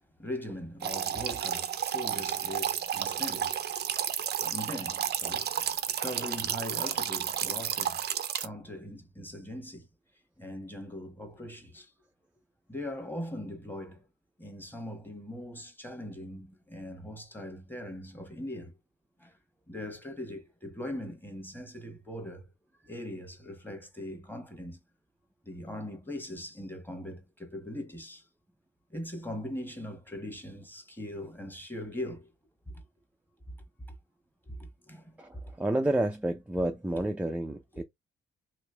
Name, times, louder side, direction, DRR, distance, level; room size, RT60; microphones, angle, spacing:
voice 1, 0.2-3.6 4.4-8.0 8.4-9.9 10.4-11.9 12.7-14.0 14.4-18.7 19.2-19.4 19.7-22.5 22.8-24.8 25.4-28.2 28.9-32.3 32.7-32.8 34.4-35.4, left 1 dB, 10° left, 1.3 m, -40 dB
sound 1, 0.8-8.5, right 9 dB, 55° right, 0.6 m, -32 dB
voice 2, 35.2-37.8, right 1 dB, 5° right, 0.5 m, -30 dB
3.1 x 3.1 x 3.4 m
cardioid pair, 90°, 20 cm